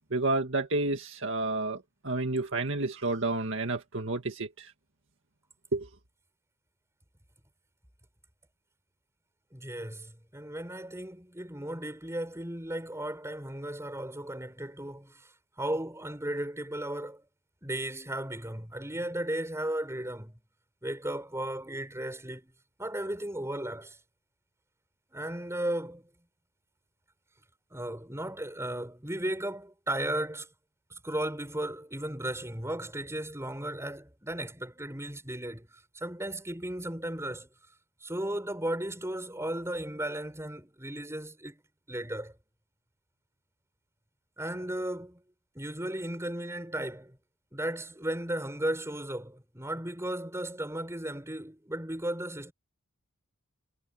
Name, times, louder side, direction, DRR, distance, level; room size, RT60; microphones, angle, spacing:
voice 1, 0.1-4.7 5.7-5.9, right 2 dB, 60° right, 2.0 m, -30 dB
voice 2, 9.5-15.3 15.6-17.2 17.6-20.4 20.8-22.5 22.8-24.0 25.1-26.1 27.7-30.5 30.9-37.5 38.0-41.6 41.9-42.3 44.4-45.2 45.5-47.2 47.5-52.5, right 1 dB, 15° right, 7.5 m, -35 dB
head